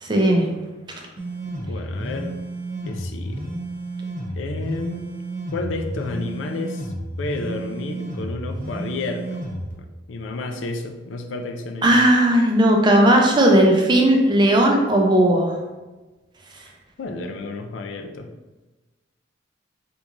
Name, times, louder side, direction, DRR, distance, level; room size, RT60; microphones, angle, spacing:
voice 1, 0.0-0.5 11.8-15.6, right 1 dB, 25° right, 1 dB, 0.5 m, -16 dB
sound 1, 1.2-9.7, right 1 dB, 45° right, 0.9 m, -31 dB
voice 2, 1.5-2.4 2.9-3.4 4.4-5.1 5.5-6.9 7.2-9.5 10.1-12.0 17.0-18.3, left 3 dB, 85° left, 5 dB, 0.4 m, -31 dB
3.5 x 2.9 x 2.5 m, 1.2 s
head